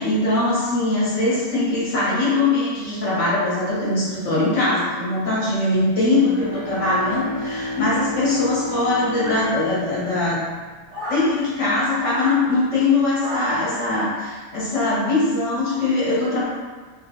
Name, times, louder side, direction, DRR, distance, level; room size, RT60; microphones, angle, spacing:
voice 1, 0.0-10.4 11.1-16.4, left 2 dB, 55° left, -8 dB, 1.3 m, -21 dB
Bowed string instrument, 6.2-11.3, left 1 dB, 25° right, 0.6 m, -32 dB
sound 1, 9.2-10.0 10.9-11.3 12.0-12.4 13.2-13.7, equal, 65° right, 1.3 m, -30 dB
3.3 x 2.3 x 3.7 m, 1.4 s
omnidirectional pair, 1.6 m